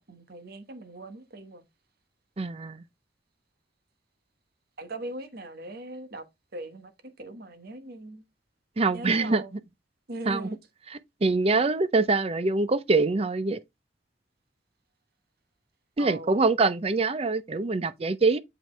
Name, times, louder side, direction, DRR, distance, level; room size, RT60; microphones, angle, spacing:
voice 1, 0.0-1.7 4.8-6.2 6.5-6.9 7.2-8.2 8.9-9.5 10.1-10.6 16.0-16.5, right 1 dB, 55° right, 1.2 m, -40 dB
voice 2, 2.4-2.8 8.8-9.6 10.3-10.5 10.9-13.6 16.0-18.4, right 3 dB, 35° right, 0.5 m, -24 dB
7.5 x 5.2 x 3.2 m
head